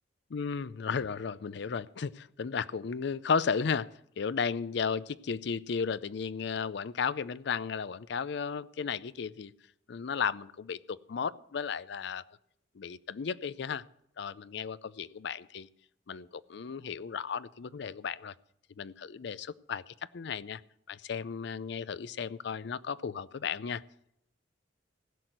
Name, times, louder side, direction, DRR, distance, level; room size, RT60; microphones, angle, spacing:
voice 1, 0.3-9.5 9.9-12.2 12.7-13.8 14.2-15.7 16.1-18.3 18.8-20.6 20.9-23.8, left 6 dB, 65° left, 18 dB, 0.5 m, -34 dB
16.0 x 6.2 x 9.2 m, 0.76 s
head